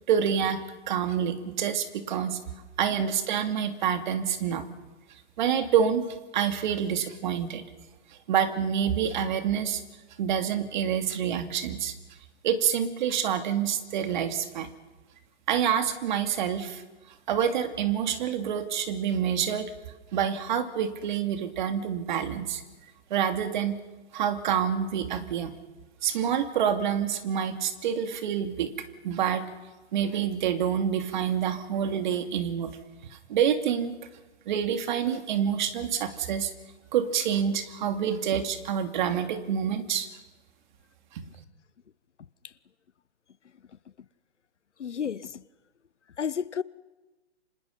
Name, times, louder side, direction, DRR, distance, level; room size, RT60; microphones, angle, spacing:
voice 1, 0.0-2.4 2.8-4.7 5.4-7.6 8.3-9.8 10.2-11.9 12.4-14.7 15.5-16.8 17.3-19.7 20.1-22.6 23.1-23.8 24.1-25.5 26.0-28.7 29.0-29.5 29.9-32.8 33.3-34.0 34.5-36.5 36.9-40.1 41.1-41.2, right 8 dB, 40° right, 2.6 m, -27 dB
voice 2, 44.8-45.4 46.2-46.6, left 7 dB, 85° left, 1.1 m, -31 dB
29.0 x 26.5 x 5.6 m
hypercardioid pair, 150°, 35 cm